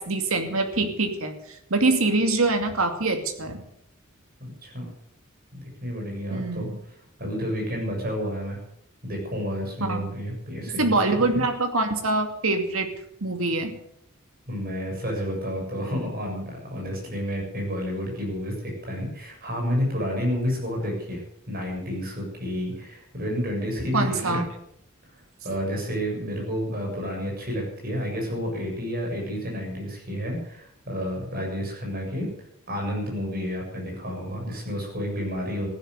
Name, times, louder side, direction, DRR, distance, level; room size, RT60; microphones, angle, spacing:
voice 1, 0.0-1.3 1.7-3.6 6.3-6.7 9.8-10.1 10.8-12.9 13.2-13.8 22.7-22.8 23.9-24.5, right 2 dB, 80° right, 6 dB, 2.5 m, -24 dB
voice 2, 4.4-4.9 5.5-6.7 7.2-8.6 9.0-11.4 14.5-21.2 21.5-24.4 25.4-32.3 32.7-35.7, equal, 45° right, 0 dB, 7.5 m, -30 dB
15.5 x 11.0 x 8.1 m, 0.73 s
head